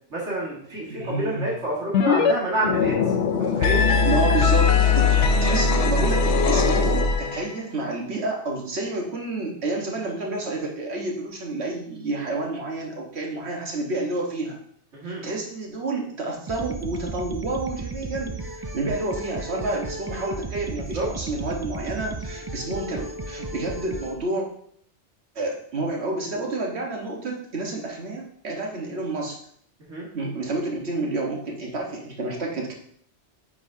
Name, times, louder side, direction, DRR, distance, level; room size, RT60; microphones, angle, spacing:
voice 1, 0.1-3.0 3.4-3.8 14.9-15.2 20.9-21.1 29.8-30.1, right 1 dB, 90° right, -5 dB, 2.1 m, -28 dB
voice 2, 0.9-1.6 4.0-14.6 15.0-24.4 25.3-29.4 30.1-32.7, right 2 dB, 70° right, 0 dB, 1.6 m, -29 dB
sound 1, 1.9-2.3 2.6-7.5, left 5 dB, 75° left, 0.9 m, -20 dB
sound 2, 16.5-24.1, right 2 dB, 35° right, 0.3 m, -34 dB
8.8 x 5.0 x 2.7 m, 0.65 s
omnidirectional pair, 1.2 m